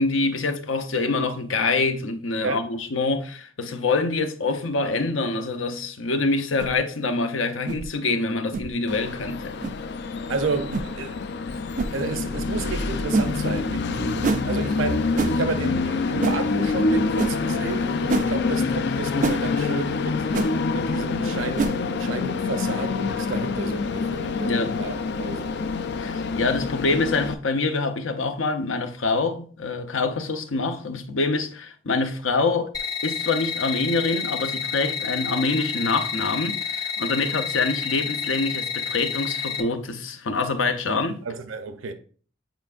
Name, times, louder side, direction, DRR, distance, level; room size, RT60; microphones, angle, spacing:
voice 1, 0.0-9.5 24.4-24.7 26.0-32.7 33.0-41.2, left 3 dB, 80° left, 0.8 m, -25 dB
sound 1, 6.6-6.8 7.7-7.8 8.5-8.7 9.6-9.8 10.7-10.9 11.8-11.9 13.1-13.3 14.2-14.4 15.2-15.4 16.2-16.4 17.2-17.3 18.1-18.3 19.2-19.4 20.3-20.5 21.6-21.8, right 3 dB, 40° right, 0.3 m, -24 dB
Train, 8.9-27.3, left 4 dB, 60° left, 0.4 m, -26 dB
voice 2, 10.3-11.2 11.9-20.3 20.7-25.6 41.2-41.9, right 3 dB, 85° right, 0.7 m, -31 dB
sound 2, 32.7-39.6, left 7 dB, 20° left, 0.8 m, -29 dB
9.0 x 4.5 x 2.5 m
head